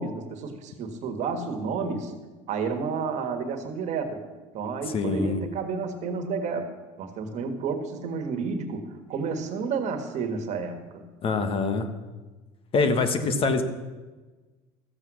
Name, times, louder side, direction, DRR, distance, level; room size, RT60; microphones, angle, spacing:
voice 1, 0.0-2.1 2.5-4.2 4.5-6.7 7.0-11.0, right 5 dB, 50° right, 7 dB, 1.6 m, -31 dB
voice 2, 4.9-5.4 11.2-11.9 12.7-13.6, left 4 dB, 40° left, 9 dB, 1.3 m, -24 dB
14.0 x 7.8 x 6.3 m, 1.3 s
supercardioid pair, 110°, 15 cm